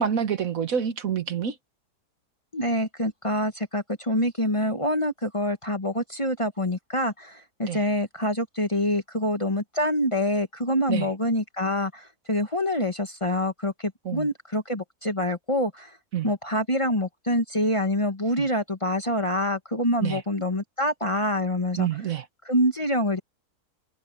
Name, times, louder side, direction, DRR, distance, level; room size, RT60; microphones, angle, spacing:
voice 1, 0.0-1.5 7.7-7.8 10.9-11.1 14.0-14.3 16.1-16.3 18.4-18.5 20.0-20.2 21.8-22.2, right 8 dB, 60° right, 1.5 m, -27 dB
voice 2, 2.5-16.0 16.2-21.9 22.4-23.2, left 1 dB, 20° left, 1.3 m, -26 dB
omnidirectional pair, 1.7 m